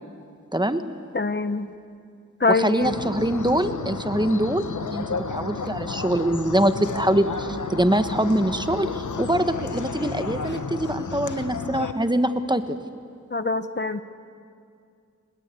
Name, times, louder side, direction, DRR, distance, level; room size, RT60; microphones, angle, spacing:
voice 1, 1.1-1.7 2.4-2.9 13.3-14.0, left 3 dB, 35° left, 11 dB, 1.0 m, -24 dB
voice 2, 2.5-4.6 4.9-5.0 5.3-12.8, right 1 dB, 15° right, 9 dB, 1.2 m, -23 dB
sound 1, 2.8-11.9, left 5 dB, 70° left, 1.3 m, -32 dB
28.5 x 20.0 x 8.3 m, 2.3 s
wide cardioid pair, 70°, 31 cm